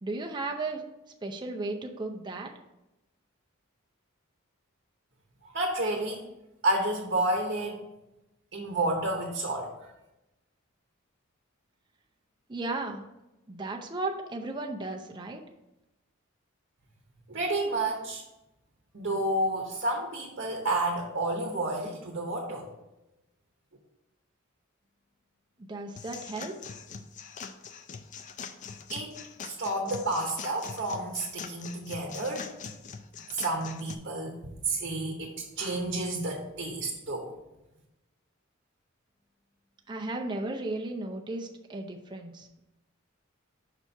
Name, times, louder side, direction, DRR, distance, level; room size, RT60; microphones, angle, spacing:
voice 1, 0.0-0.8 1.2-2.5 12.5-13.0 13.5-15.4 25.6-26.5 39.9-42.5, right 2 dB, 20° right, 2 dB, 0.5 m, -35 dB
voice 2, 5.4-6.2 6.6-7.8 8.5-9.7 17.3-18.2 18.9-22.7 28.9-29.1 29.4-32.5 33.3-34.4 34.7-37.3, right 2 dB, 55° right, 1 dB, 1.0 m, -30 dB
sound 1, 26.0-33.9, left 6 dB, 35° left, 0.4 m, -43 dB
5.9 x 4.3 x 4.5 m, 0.94 s
head